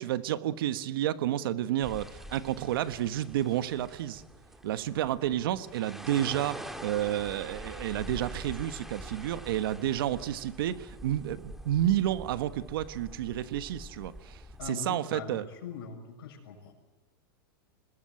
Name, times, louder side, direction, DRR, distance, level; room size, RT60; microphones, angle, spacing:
voice 1, 0.0-4.2 4.6-15.4, right 12 dB, 70° right, 11 dB, 1.4 m, -30 dB
sound 1, 1.8-14.7, equal, ahead, 1.8 m, -45 dB
voice 2, 14.6-16.7, left 6 dB, 75° left, 4 dB, 7.2 m, -42 dB
26.0 x 20.0 x 9.1 m, 1.2 s
hypercardioid pair, 130°, 12 cm